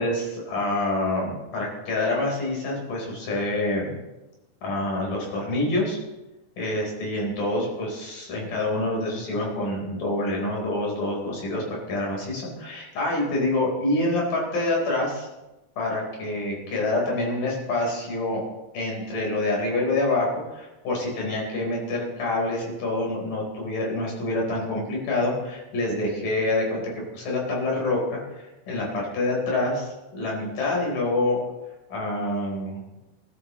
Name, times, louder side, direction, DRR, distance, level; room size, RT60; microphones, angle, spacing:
voice 1, 0.0-3.9 4.6-6.0 6.6-15.3 15.8-18.4 18.7-26.8 27.1-31.4 31.9-33.0, left 2 dB, 80° left, -2 dB, 5.8 m, -27 dB
19.5 x 12.5 x 3.1 m, 1.0 s
omnidirectional pair, 3.7 m